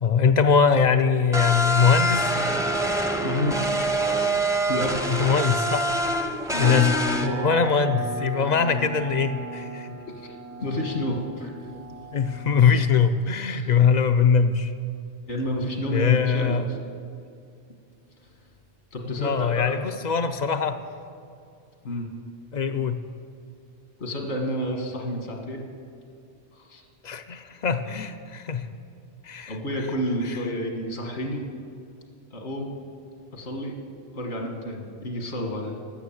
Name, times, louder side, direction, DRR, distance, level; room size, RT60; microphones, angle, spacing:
voice 1, 0.0-2.4 5.1-5.9 6.6-9.9 12.1-14.7 15.9-16.6 19.0-20.8 22.5-23.0 27.0-28.7 29.2-29.6, left 6 dB, 55° left, 9 dB, 0.5 m, -22 dB
sound 1, 1.3-7.3, right 1 dB, 5° right, 0.5 m, -25 dB
voice 2, 3.2-4.4 4.7-5.1 6.4-6.7 10.2-10.3 10.6-11.5 13.4-13.6 15.3-16.6 18.9-19.8 21.8-22.1 24.0-25.6 26.5-26.8 29.5-31.4 32.3-32.7 33.3-33.7 34.1-35.8, equal, 80° left, 2 dB, 1.9 m, -30 dB
sound 2, 6.6-12.8, right 2 dB, 75° right, 1.3 m, -34 dB
12.5 x 6.9 x 7.2 m, 2.4 s
omnidirectional pair, 1.1 m